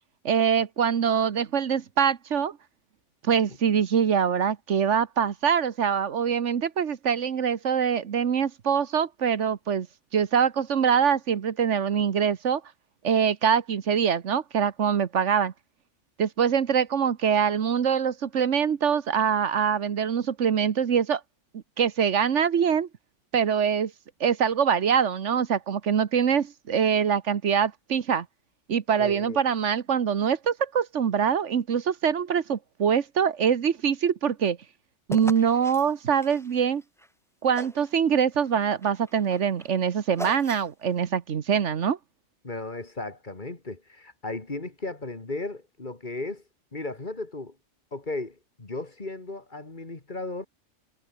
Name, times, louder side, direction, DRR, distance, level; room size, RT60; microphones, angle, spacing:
voice 1, 0.2-2.6 3.2-9.9 10.1-12.6 13.0-15.5 16.2-21.2 21.5-22.9 23.3-23.9 24.2-28.3 28.7-34.6 35.1-36.8 37.4-42.0, right 7 dB, 75° right, 1.4 m, -24 dB
voice 2, 29.0-29.4 42.4-46.4 46.7-47.6 47.9-50.5, left 2 dB, 40° left, 2.6 m, -35 dB
sound 1, 35.1-37.1 37.5-38.0 38.3-40.9, equal, ahead, 4.3 m, -41 dB
omnidirectional pair, 1.3 m